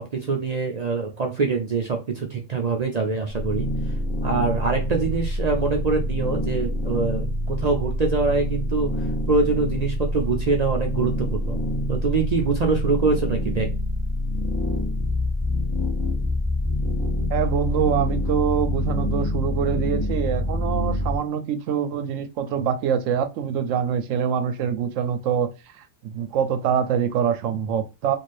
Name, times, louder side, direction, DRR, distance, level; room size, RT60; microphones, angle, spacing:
voice 1, 0.0-3.7 4.2-8.9 9.3-11.6 11.9-13.7, right 4 dB, 50° right, 0.4 m, -24 dB
sound 1, 3.3-21.2, left 1 dB, 25° left, 0.7 m, -26 dB
voice 2, 17.3-25.5 25.8-28.2, right 8 dB, 80° right, 0.9 m, -25 dB
3.2 x 2.5 x 2.5 m
omnidirectional pair, 1.3 m